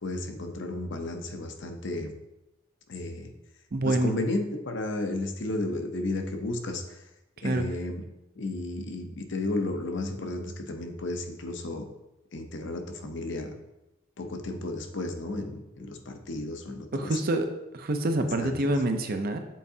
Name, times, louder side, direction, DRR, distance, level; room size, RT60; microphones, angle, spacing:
voice 1, 0.0-2.1 2.9-3.3 3.8-7.0 7.4-8.0 8.4-11.8 12.3-13.5 14.2-17.2 18.2-18.7, left 2 dB, 65° left, 5 dB, 0.7 m, -33 dB
voice 2, 3.7-4.2 7.4-7.6 16.9-17.5 17.7-19.4, right 1 dB, 50° right, 6 dB, 0.6 m, -26 dB
7.4 x 4.6 x 2.7 m, 0.94 s
head